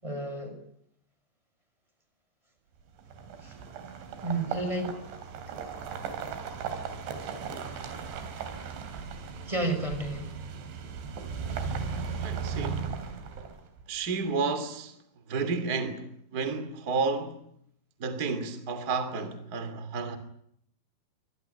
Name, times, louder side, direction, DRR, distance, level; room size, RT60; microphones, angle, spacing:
voice 1, 0.0-0.6 3.4-3.6 4.2-5.0 9.5-10.3, right 2 dB, 5° right, 5.7 m, -31 dB
sound 1, 3.0-13.8, right 6 dB, 85° right, 5.5 m, -37 dB
voice 2, 12.2-12.9 13.9-15.0 15.3-17.5 18.0-20.2, right 4 dB, 25° right, 2.5 m, -31 dB
24.0 x 19.5 x 10.0 m
omnidirectional pair, 5.2 m